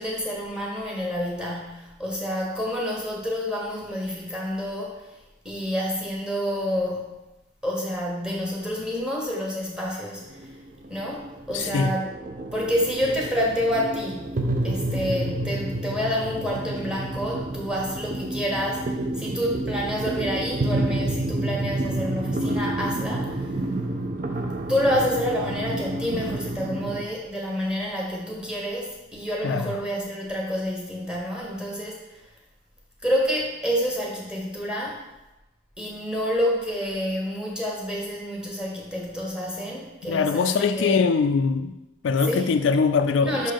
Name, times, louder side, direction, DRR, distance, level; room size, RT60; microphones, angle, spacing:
voice 1, 0.0-5.0 5.4-7.1 7.6-10.4 10.9-12.1 12.5-23.5 24.7-32.1 33.0-35.0 35.8-41.0 42.2-42.5 43.2-43.5, equal, 5° right, 1.1 m, -28 dB
sound 1, 10.2-27.0, right 1 dB, 45° right, 0.5 m, -29 dB
voice 2, 11.5-11.9 29.4-29.8 40.1-41.8 42.0-43.5, left 5 dB, 75° left, 0.3 m, -22 dB
5.6 x 3.7 x 5.1 m
head